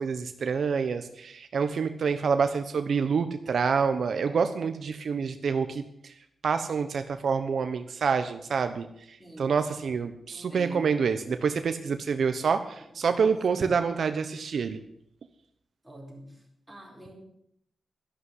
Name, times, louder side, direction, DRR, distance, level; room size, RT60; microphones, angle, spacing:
voice 1, 0.0-6.1 6.4-14.8, right 5 dB, 65° right, 9 dB, 1.0 m, -27 dB
voice 2, 9.2-9.9 10.3-11.0 12.8-13.8 15.8-17.1, equal, 5° right, -1 dB, 4.6 m, -46 dB
12.5 x 11.5 x 8.0 m, 0.73 s
wide cardioid pair, 140°, 0 cm